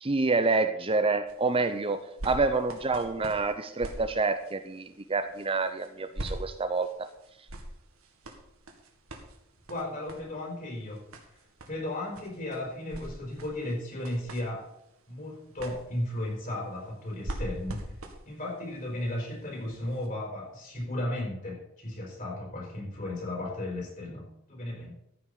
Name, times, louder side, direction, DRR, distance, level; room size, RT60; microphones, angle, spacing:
voice 1, 0.0-7.1, right 3 dB, 25° right, 9 dB, 0.6 m, -28 dB
sound 1, 1.3-20.1 20.7-20.8, right 1 dB, 75° right, 2.0 m, -44 dB
voice 2, 9.7-11.1 11.7-14.7 15.1-17.9 18.2-24.9, left 1 dB, 40° left, -2 dB, 5.1 m, -35 dB
14.0 x 6.0 x 6.8 m, 0.78 s
head